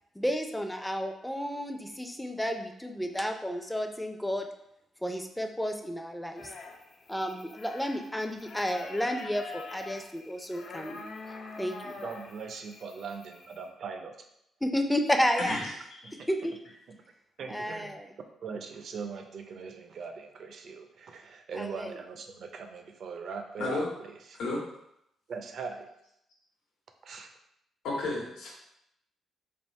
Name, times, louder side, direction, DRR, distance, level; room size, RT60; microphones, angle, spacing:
voice 1, 0.2-4.5 5.0-6.5 7.1-12.0 14.6-15.6 16.3-16.6 17.5-18.1 21.5-22.0, equal, 5° left, 5 dB, 0.4 m, -32 dB
sound 1, 6.4-13.7, left 3 dB, 60° left, 0.5 m, -45 dB
voice 2, 12.0-14.1 16.0-16.3 17.4-18.0 18.4-24.4 25.3-25.8 27.0-27.3, right 5 dB, 60° right, 5 dB, 0.5 m, -40 dB
voice 3, 15.4-15.7 16.0-16.1 23.6-23.8 24.4-24.6 27.8-28.5, left 2 dB, 85° left, -5 dB, 1.1 m, -32 dB
3.5 x 2.5 x 4.2 m, 0.79 s
cardioid pair, 100°, 0 cm